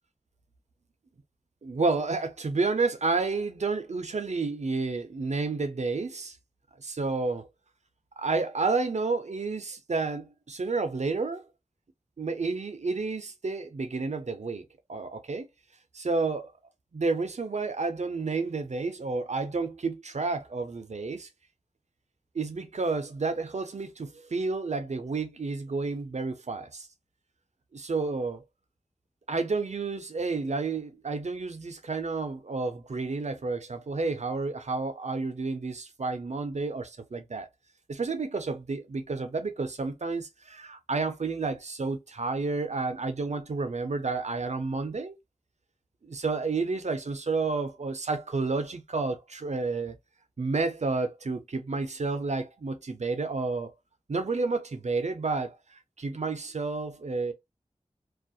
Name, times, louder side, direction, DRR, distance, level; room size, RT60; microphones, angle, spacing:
voice 1, 1.6-6.4 6.8-7.5 8.2-11.5 12.2-15.5 15.9-16.5 16.9-21.3 22.3-26.9 27.7-28.4 29.3-37.5 37.9-45.2 46.0-50.0 50.4-53.7 54.1-57.3, right 3 dB, 65° right, 0.5 m, -30 dB
2.3 x 2.0 x 2.6 m
wide cardioid pair, 50°, 13 cm